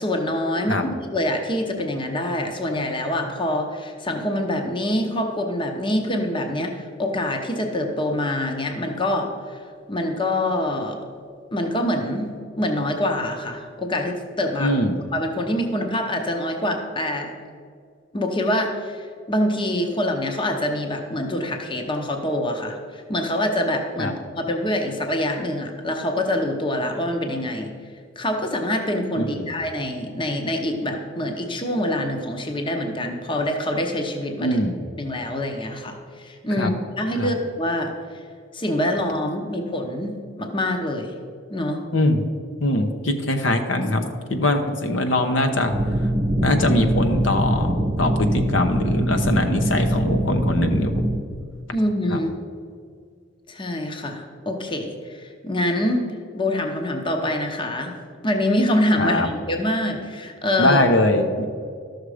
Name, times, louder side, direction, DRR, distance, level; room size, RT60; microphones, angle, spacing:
voice 1, 0.0-9.6 9.9-11.0 11.5-12.3 12.6-14.7 15.1-17.4 18.1-27.7 28.2-34.6 35.0-38.2 38.5-41.2 41.5-41.8 51.7-52.3 53.5-56.0 56.3-58.0 58.2-60.8, left 1 dB, 25° left, 4 dB, 0.8 m, -25 dB
voice 2, 14.6-15.0 24.0-24.1 29.1-29.5 34.4-34.8 36.6-36.7 37.2-37.3 41.9-42.2 42.6-45.7 46.0-46.1 46.4-47.7 48.0-51.0 52.1-52.2 59.0-59.3 60.6-61.5, left 1 dB, 70° left, 5 dB, 0.9 m, -22 dB
sound 1, 45.7-51.2, right 1 dB, 50° right, 1.1 m, -23 dB
13.0 x 6.5 x 4.9 m, 2.2 s
head